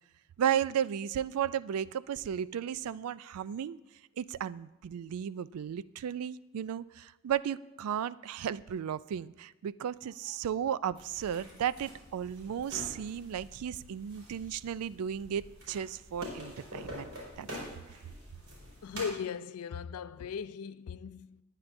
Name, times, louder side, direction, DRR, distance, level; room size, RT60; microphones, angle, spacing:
voice 1, 0.4-3.8 4.2-17.1 17.4-17.5, right 9 dB, 80° right, 0.3 m, -34 dB
sound 1, 10.9-19.1, equal, 60° right, 4.7 m, -46 dB
voice 2, 18.8-21.4, left 6 dB, 85° left, 0.4 m, -38 dB
19.5 x 9.2 x 2.6 m
head